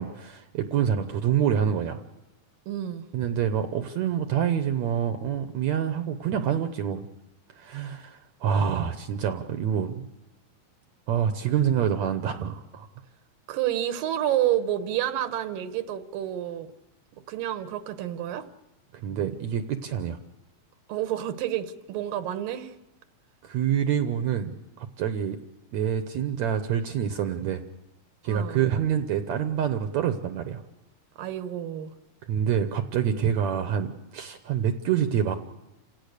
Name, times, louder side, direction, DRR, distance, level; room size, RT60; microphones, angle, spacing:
voice 1, 0.0-2.0 3.1-7.1 7.6-10.1 11.1-12.9 18.9-20.2 23.4-25.4 25.7-27.6 28.2-30.6 32.3-35.4, right 8 dB, 70° right, 9 dB, 2.0 m, -27 dB
voice 2, 2.7-3.1 13.5-16.7 17.3-18.5 20.9-22.7 28.3-28.7 31.2-31.9, right 12 dB, 85° right, 10 dB, 2.8 m, -29 dB
28.5 x 17.0 x 6.6 m, 0.96 s
omnidirectional pair, 3.9 m